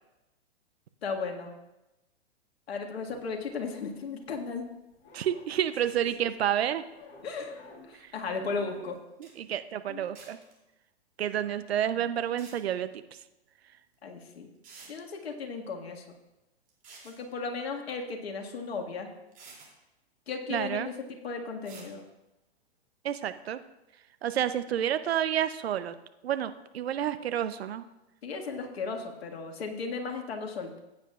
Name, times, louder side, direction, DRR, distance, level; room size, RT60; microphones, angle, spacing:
voice 1, 1.0-1.5 2.7-4.7 7.2-7.5 7.9-9.0 9.9-10.0 11.9-12.0 14.0-14.5 14.9-16.2 17.0-19.1 20.3-22.0 28.2-30.8, left 4 dB, 70° left, 2 dB, 1.8 m, -35 dB
sound 1, 3.0-4.6 4.9-6.1 6.9-8.0 8.3-9.0, left 3 dB, 45° left, 3.1 m, -54 dB
voice 2, 5.1-6.8 9.2-10.4 11.2-12.9 20.5-20.9 23.0-23.6 24.2-25.9 26.2-27.8, right 10 dB, 70° right, 12 dB, 0.7 m, -29 dB
sound 2, 8.9-9.0 9.2-9.3 10.1-10.5 12.2-12.6 13.9-14.0 14.6-14.9 16.7-17.2 18.7-18.8 19.3-19.7 21.6-21.9, right 4 dB, 25° right, 2.8 m, -50 dB
15.5 x 9.1 x 2.4 m, 0.97 s
hypercardioid pair, 120°, 32 cm